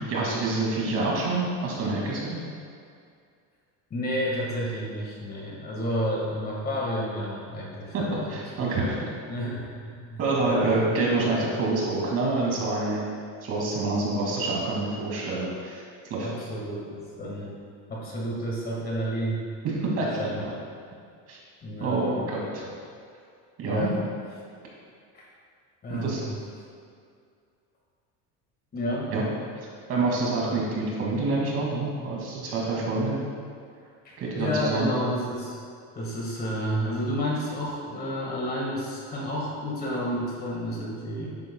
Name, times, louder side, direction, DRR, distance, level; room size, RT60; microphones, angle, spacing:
voice 1, 0.0-2.4 7.9-9.1 10.2-13.0 13.4-15.8 16.1-16.3 19.6-20.5 21.3-21.4 21.8-22.7 23.6-23.9 25.9-26.2 29.1-29.2 29.9-33.2 34.2-34.9, right 2 dB, 40° right, -3 dB, 2.4 m, -27 dB
voice 2, 3.9-8.7 9.3-10.8 16.2-17.6 17.9-19.4 20.2-20.5 21.6-22.0 23.7-24.0 25.1-25.2 25.8-26.4 28.7-29.1 34.0-35.6 36.0-41.3, equal, 25° left, -4 dB, 1.8 m, -31 dB
12.0 x 9.4 x 2.3 m, 2.3 s
cardioid pair, 165°, 35 cm